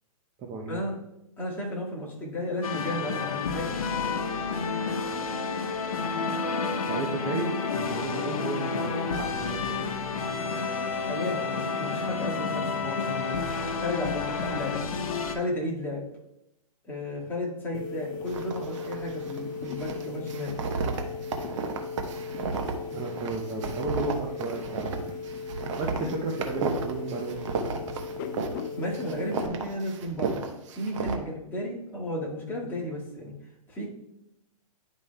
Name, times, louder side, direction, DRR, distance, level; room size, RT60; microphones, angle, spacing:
voice 1, 0.4-0.9 6.6-9.8 22.9-25.1 25.5-27.7, right 3 dB, 25° right, -1 dB, 0.7 m, -34 dB
voice 2, 1.4-3.8 11.0-14.7 15.3-16.0 16.9-20.5 28.8-30.4 30.8-33.3 33.7-33.9, left 1 dB, 10° left, -6 dB, 1.9 m, -33 dB
sound 1, 2.6-15.4, left 4 dB, 75° left, 1.0 m, -30 dB
sound 2, 17.7-29.5, left 5 dB, 35° left, 0.5 m, -37 dB
sound 3, 18.3-19.4 19.6-28.7 28.9-31.2, right 5 dB, 55° right, 1.0 m, -33 dB
10.5 x 5.1 x 2.2 m, 0.88 s
hypercardioid pair, 140°, 19 cm